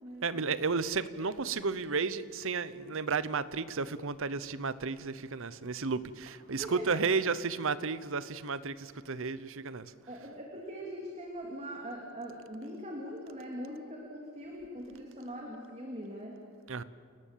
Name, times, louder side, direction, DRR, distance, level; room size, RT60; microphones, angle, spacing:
voice 1, 0.2-9.9 16.7-16.8, right 5 dB, 65° right, 15 dB, 0.9 m, -33 dB
voice 2, 6.5-7.2 10.1-16.4, equal, 30° right, 0 dB, 2.8 m, -42 dB
29.0 x 18.5 x 7.5 m, 2.2 s
head